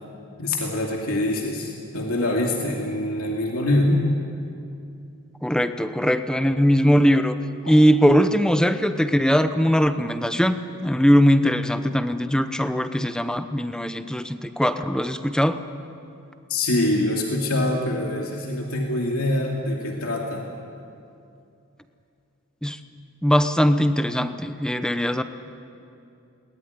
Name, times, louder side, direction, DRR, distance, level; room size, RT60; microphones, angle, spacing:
voice 1, 0.4-4.0 16.5-20.5, left 1 dB, 90° left, -1 dB, 2.6 m, -24 dB
voice 2, 5.4-7.4 7.6-15.6 22.6-22.8 23.2-25.2, equal, 5° left, 10 dB, 0.8 m, -20 dB
22.0 x 19.0 x 9.7 m, 2.6 s
head